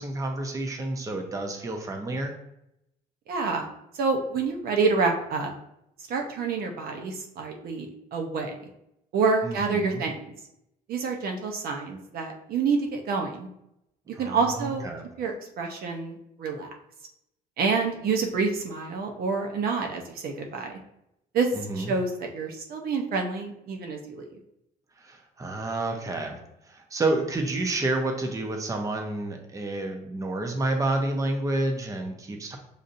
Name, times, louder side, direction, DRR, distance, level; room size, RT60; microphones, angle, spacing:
voice 1, 0.0-2.3 9.4-10.0 14.1-15.1 21.5-21.9 25.0-26.4 26.6-32.6, right 2 dB, 20° right, 3 dB, 0.6 m, -29 dB
voice 2, 3.3-3.6 3.9-5.5 6.1-8.5 9.1-10.2 10.9-13.5 14.2-14.8 15.2-16.7 17.6-20.7 21.3-21.5 21.8-24.3, right 4 dB, 65° right, 3 dB, 0.7 m, -28 dB
6.5 x 2.6 x 2.6 m, 0.81 s
cardioid pair, 110°, 17 cm